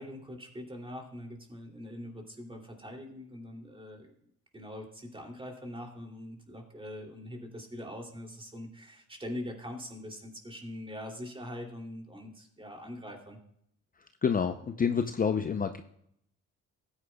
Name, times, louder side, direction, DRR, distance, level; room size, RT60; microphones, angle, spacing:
voice 1, 0.0-4.1 4.5-13.4, left 1 dB, 15° right, 2 dB, 2.7 m, -43 dB
voice 2, 14.2-15.8, left 6 dB, 30° left, 7 dB, 0.6 m, -28 dB
15.0 x 9.7 x 2.3 m, 0.71 s
cardioid pair, 90°, 30 cm